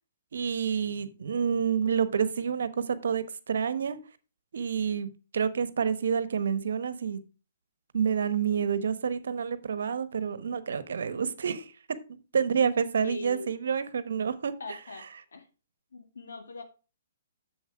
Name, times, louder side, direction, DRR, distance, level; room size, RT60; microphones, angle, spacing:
voice 1, 0.3-4.0 4.5-7.2 7.9-14.5, right 7 dB, 70° right, 1.0 m, -28 dB
voice 2, 13.0-13.6 14.6-15.5 15.9-16.6, left 3 dB, 80° left, 2.0 m, -41 dB
7.4 x 7.1 x 4.6 m
hypercardioid pair, 140°, 0 cm